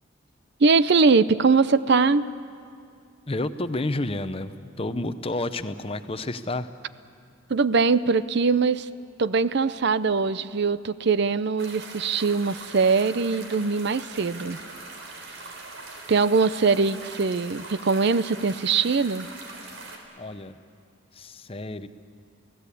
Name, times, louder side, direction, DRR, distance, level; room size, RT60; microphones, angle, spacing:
voice 1, 0.6-2.3 7.5-8.9 9.2-14.6 16.1-19.3, right 4 dB, 60° right, 15 dB, 0.6 m, -22 dB
voice 2, 3.3-6.7 20.2-20.5 21.1-21.9, left 2 dB, 30° left, 11 dB, 0.7 m, -30 dB
sound 1, 11.6-20.0, right 3 dB, 85° right, 3.8 m, -42 dB
28.5 x 17.5 x 8.4 m, 2.3 s
head